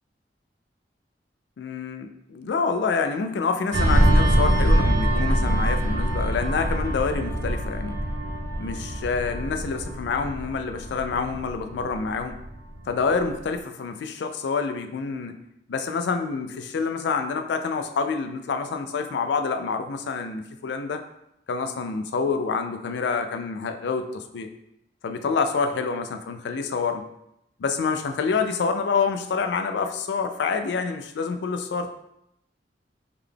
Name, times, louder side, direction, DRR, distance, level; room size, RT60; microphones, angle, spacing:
voice 1, 1.6-8.0 8.6-12.4 12.9-15.4 15.7-21.0 21.5-24.5 25.0-27.0 27.6-31.9, left 5 dB, 75° left, 7 dB, 0.3 m, -27 dB
sound 1, 3.7-12.8 13.1-13.4, right 1 dB, 70° right, 0.5 m, -24 dB
3.7 x 2.2 x 3.3 m, 0.81 s
head